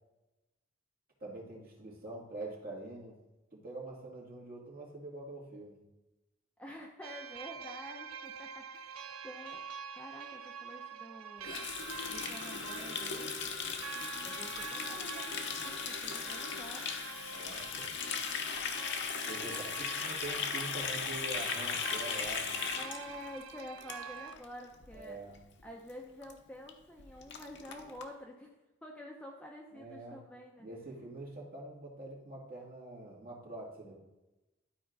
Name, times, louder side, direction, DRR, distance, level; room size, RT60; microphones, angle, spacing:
voice 1, 1.2-3.2 3.5-5.8 17.3-17.9 19.3-22.5 24.9-25.4 29.7-30.2 30.6-34.0, right 2 dB, 45° right, -4 dB, 2.4 m, -45 dB
voice 2, 6.6-9.6 10.0-11.6 12.1-13.4 14.2-15.4 15.6-16.9 19.5-19.7 22.8-25.2 25.6-28.5 28.8-30.7, equal, 5° left, -1 dB, 0.7 m, -49 dB
sound 1, 7.0-24.4, right 6 dB, 85° right, 0.5 m, -46 dB
Water tap faucet, 11.4-24.4 24.7-25.0 25.3-25.6 25.9-26.0 26.2-26.3 26.7-26.8 27.0-28.0, left 6 dB, 55° left, 0.8 m, -38 dB
12.0 x 4.5 x 3.9 m, 1.0 s
head